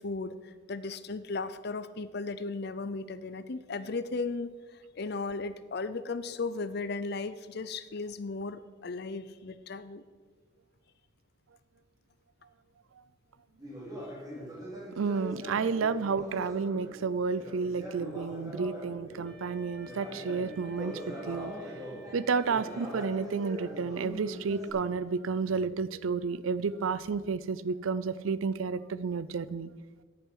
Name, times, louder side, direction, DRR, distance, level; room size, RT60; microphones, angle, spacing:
voice 1, 0.0-10.0, left 3 dB, 55° left, 14 dB, 0.6 m, -36 dB
Conversation, 13.6-19.3 19.8-24.7, equal, 20° right, 3.0 m, -42 dB
voice 2, 14.9-21.5 22.1-29.7, right 5 dB, 85° right, 17 dB, 0.5 m, -31 dB
Wind instrument woodwind instrument, 19.2-23.4, left 1 dB, 5° left, 1.9 m, -52 dB
10.5 x 9.2 x 5.5 m, 1.5 s
head